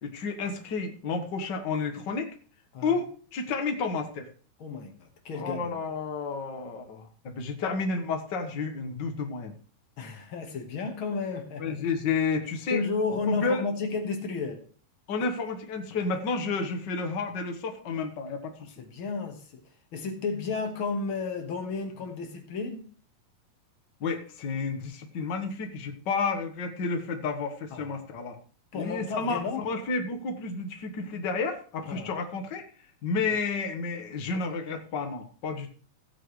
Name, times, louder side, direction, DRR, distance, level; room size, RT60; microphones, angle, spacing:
voice 1, 0.0-2.3 2.8-4.3 5.3-9.6 11.6-12.8 13.3-13.6 15.1-18.7 24.0-28.4 28.7-32.7 33.0-35.7, left 4 dB, 70° left, 1.0 m, -31 dB
voice 2, 4.6-5.7 10.0-11.8 12.7-14.6 18.6-19.6 19.9-22.8 27.7-28.0 28.7-29.7 31.9-32.1, left 4 dB, 50° left, 1.7 m, -32 dB
16.0 x 8.9 x 3.2 m
omnidirectional pair, 4.1 m